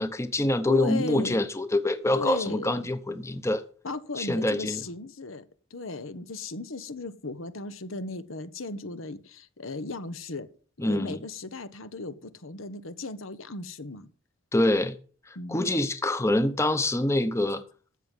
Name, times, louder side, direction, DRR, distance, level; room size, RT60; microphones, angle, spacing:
voice 1, 0.0-3.6 4.2-4.8 10.8-11.2 14.5-14.9 15.5-17.6, left 1 dB, 15° left, 0.8 m, -25 dB
voice 2, 0.7-1.4 2.1-2.9 3.8-5.4 5.7-10.5 10.8-14.1 15.3-15.7, left 3 dB, 85° left, 1.2 m, -36 dB
13.5 x 7.6 x 5.5 m
head